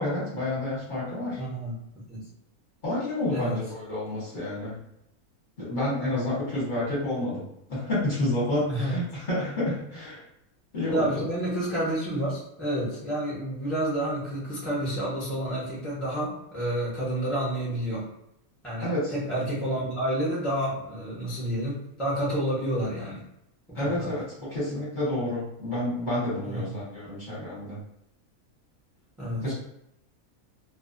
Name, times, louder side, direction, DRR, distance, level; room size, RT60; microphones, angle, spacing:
voice 1, 0.0-1.4 2.8-4.8 5.6-7.4 7.7-10.2 10.7-11.2 18.8-19.1 23.7-27.8 29.4-29.5, left 1 dB, 40° left, -8 dB, 0.9 m, -29 dB
voice 2, 1.4-2.3 3.3-3.6 8.7-9.0 10.9-18.1 18.6-23.2 23.7-24.2 26.4-26.7 29.2-29.5, right 1 dB, ahead, -7 dB, 0.6 m, -30 dB
2.4 x 2.3 x 2.5 m, 0.79 s
omnidirectional pair, 1.5 m